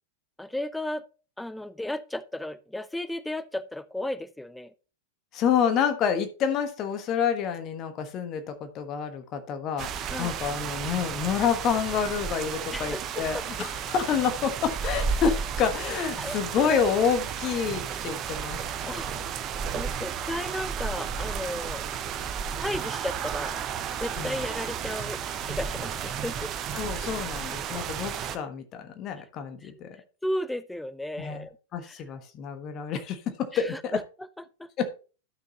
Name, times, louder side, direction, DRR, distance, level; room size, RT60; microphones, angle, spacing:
voice 1, 0.4-1.1 1.4-4.7 10.1-10.4 12.7-13.4 16.2-16.4 18.9-19.1 19.7-21.8 22.6-23.6 24.0-26.5 29.6-29.7 30.2-31.6 31.9-32.0 33.5-33.6 33.9-34.3 34.6-34.7, left 1 dB, 5° left, 0.5 m, -34 dB
voice 2, 5.3-19.3 24.2-24.5 26.7-30.0 31.2-34.0 34.8-35.0, left 7 dB, 35° left, 1.3 m, -28 dB
sound 1, 9.8-28.4, right 7 dB, 30° right, 0.8 m, -33 dB
12.0 x 6.5 x 2.9 m
figure-of-eight pair, 90°, 0 cm